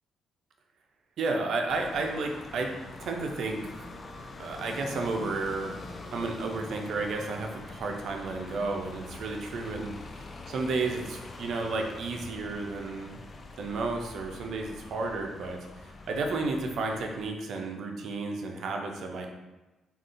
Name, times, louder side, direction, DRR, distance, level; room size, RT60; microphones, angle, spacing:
voice 1, 1.2-2.7 3.0-3.9 4.4-13.3 13.6-19.3, right 3 dB, 70° right, 3 dB, 0.4 m, -32 dB
sound 1, 1.7-17.3, left 3 dB, 45° left, 0.3 m, -44 dB
3.5 x 2.4 x 2.5 m, 1.1 s
supercardioid pair, 65°, 0 cm